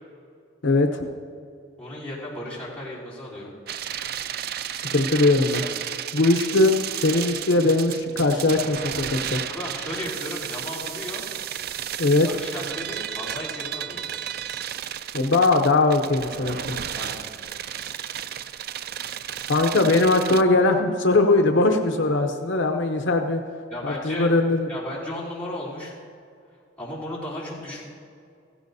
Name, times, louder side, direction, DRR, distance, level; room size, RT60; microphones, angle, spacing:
voice 1, 0.6-1.1 4.8-5.6 6.1-9.4 12.0-12.3 15.1-16.8 19.5-23.4 23.8-24.7, left 2 dB, 75° left, 4 dB, 0.7 m, -20 dB
voice 2, 1.8-3.5 9.5-11.2 12.2-14.0 17.0-17.3 23.7-24.4 24.7-25.9 26.8-27.8, left 1 dB, 10° left, -10 dB, 3.4 m, -35 dB
sound 1, 3.7-20.4, right 10 dB, 50° right, 0.3 m, -33 dB
16.0 x 15.5 x 2.7 m, 2.3 s
head